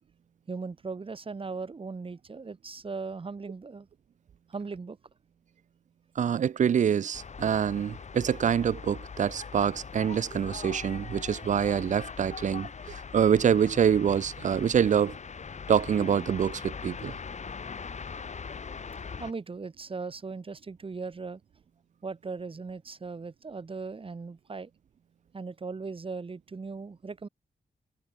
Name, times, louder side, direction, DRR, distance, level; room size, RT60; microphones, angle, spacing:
voice 1, 0.5-3.9 4.5-5.0 19.2-21.4 22.0-24.7 25.3-27.3, right 4 dB, 35° right, 3.6 m, -38 dB
voice 2, 6.2-15.2 15.7-17.1, right 8 dB, 55° right, 0.5 m, -26 dB
sound 1, 7.1-19.3, left 5 dB, 50° left, 5.1 m, -41 dB
wide cardioid pair, 115°, 15 cm